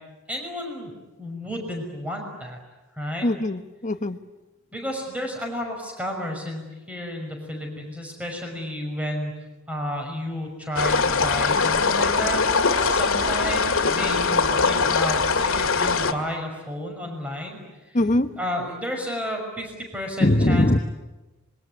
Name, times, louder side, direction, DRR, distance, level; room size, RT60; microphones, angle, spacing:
voice 1, 0.3-0.9 1.2-2.6 2.9-3.3 4.7-18.0 18.4-20.8, equal, 5° right, 2 dB, 5.9 m, -32 dB
voice 2, 3.2-4.2 17.9-18.3 20.2-20.8, left 1 dB, 35° left, 10 dB, 1.1 m, -21 dB
sound 1, 10.8-16.1, left 4 dB, 65° left, 2.2 m, -22 dB
26.5 x 23.5 x 9.6 m, 1.1 s
head